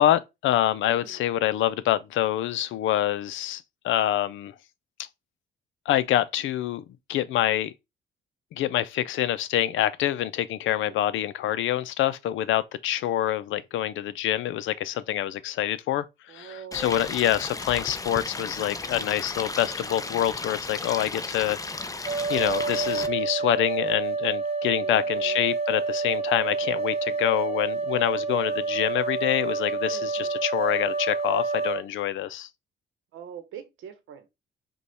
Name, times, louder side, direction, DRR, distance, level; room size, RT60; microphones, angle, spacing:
voice 1, 0.0-4.5 5.9-6.8 7.1-7.7 8.5-16.1 16.3-21.6 22.3-32.5, left 12 dB, 80° left, 0.5 m, -26 dB
voice 2, 0.8-1.3 10.8-11.2 16.3-17.1 24.7-25.4 29.9-30.3 33.1-34.3, right 8 dB, 85° right, 1.0 m, -44 dB
Stream, 16.7-23.1, left 3 dB, 15° left, 0.5 m, -35 dB
sound 1, 22.1-31.8, right 4 dB, 35° right, 0.8 m, -28 dB
5.2 x 2.3 x 4.2 m
cardioid pair, 90°, 20 cm